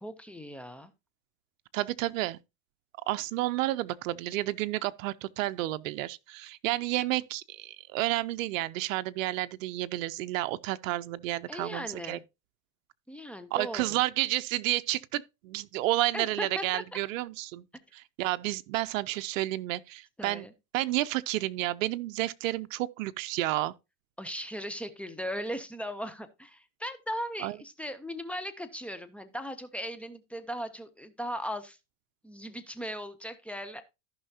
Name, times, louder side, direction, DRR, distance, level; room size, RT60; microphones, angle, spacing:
voice 1, 0.0-0.9 11.5-12.2 13.1-14.0 16.1-16.8 20.2-20.5 24.2-31.8 32.2-33.8, equal, 5° left, 0.5 m, -38 dB
voice 2, 1.7-2.4 3.1-12.2 13.5-17.7 17.9-20.5 20.7-23.7 27.4-27.6, right 17 dB, 80° right, 0.6 m, -31 dB
14.5 x 5.6 x 2.7 m
supercardioid pair, 140°, 39 cm